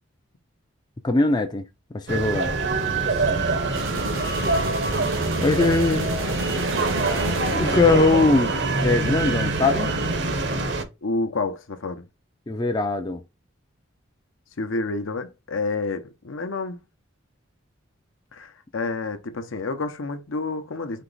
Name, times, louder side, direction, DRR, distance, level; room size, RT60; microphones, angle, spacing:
voice 1, 1.0-1.6 1.9-2.5 5.4-6.1 7.5-8.5 8.8-9.9 12.5-13.2, left 3 dB, 20° left, 0.4 m, -21 dB
sound 1, 2.1-10.8, right 3 dB, 55° right, 0.9 m, -24 dB
voice 2, 3.1-4.3 11.0-12.0 14.6-16.8 18.3-21.0, left 3 dB, 75° left, 0.8 m, -30 dB
sound 2, 3.7-8.6, right 3 dB, 80° right, 1.3 m, -35 dB
4.5 x 3.0 x 3.8 m
head